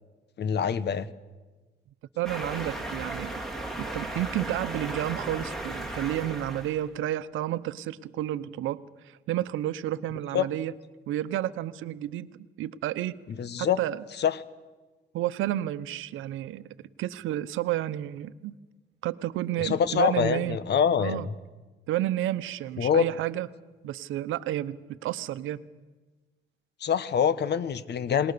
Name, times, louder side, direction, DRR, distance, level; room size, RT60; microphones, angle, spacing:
voice 1, 0.4-1.1 10.3-10.5 13.4-13.8 14.2-14.4 19.6-21.3 22.8-23.1 26.8-28.3, left 8 dB, 60° left, 15 dB, 1.2 m, -25 dB
sound 1, 2.2-6.8, right 2 dB, ahead, 3.8 m, -36 dB
voice 2, 2.2-3.3 3.8-10.7 11.1-13.2 13.6-14.0 15.1-16.7 17.0-18.5 19.0-20.6 21.0-21.3 21.9-23.5 23.8-25.6, right 13 dB, 85° right, 14 dB, 0.9 m, -31 dB
28.0 x 20.0 x 6.9 m, 1.2 s
cardioid pair, 90°, 20 cm